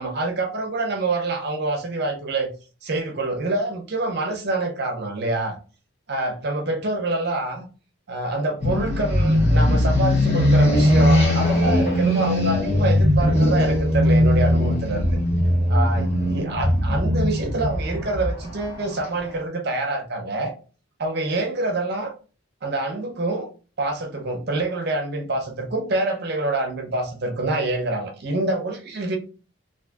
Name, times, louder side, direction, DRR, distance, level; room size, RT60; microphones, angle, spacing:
voice 1, 0.0-2.5 2.8-5.6 6.1-7.7 8.1-15.0 15.7-20.5 21.0-22.1 22.6-23.5 23.8-29.2, right 2 dB, 50° right, 0.6 m, -26 dB
sound 1, 8.6-19.3, left 1 dB, 30° left, 0.8 m, -19 dB
2.6 x 2.5 x 2.3 m
head